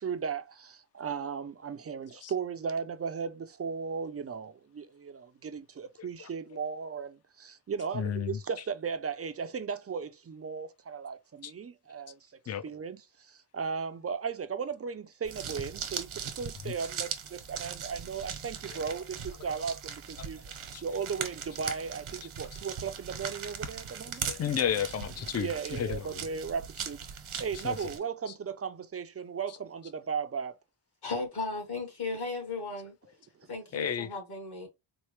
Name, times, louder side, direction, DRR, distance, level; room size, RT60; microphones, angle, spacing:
voice 1, 0.0-12.3 12.6-24.3 25.4-30.6 33.4-33.5, right 6 dB, 35° right, 0.4 m, -36 dB
voice 2, 6.0-6.3 7.9-8.4 11.4-11.5 12.5-12.7 16.7-16.8 18.7-18.8 20.2-20.3 20.7-20.8 24.3-26.2 27.6-27.9 28.3-28.4 33.7-34.1, left 8 dB, 35° left, 0.4 m, -33 dB
sound 1, 15.2-28.0, right 7 dB, 90° right, 1.0 m, -40 dB
voice 3, 31.0-32.9 33.5-34.7, left 3 dB, 50° left, 1.6 m, -36 dB
4.4 x 2.1 x 3.1 m
wide cardioid pair, 135°, 48 cm